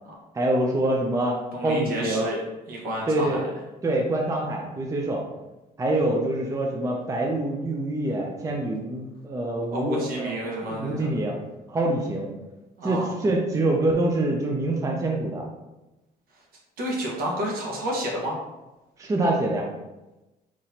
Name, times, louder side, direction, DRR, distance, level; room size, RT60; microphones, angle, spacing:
voice 1, 0.3-2.3 3.1-3.4 3.8-5.2 5.8-10.3 10.6-11.4 11.7-12.3 12.8-15.4 19.0-19.7, right 1 dB, 20° right, -1 dB, 0.5 m, -25 dB
voice 2, 1.5-2.4 2.7-3.4 9.7-11.1 12.8-13.1 16.8-18.4, right 1 dB, 60° right, -3 dB, 1.3 m, -30 dB
4.0 x 3.0 x 2.8 m, 1.0 s
cardioid pair, 110°, 17 cm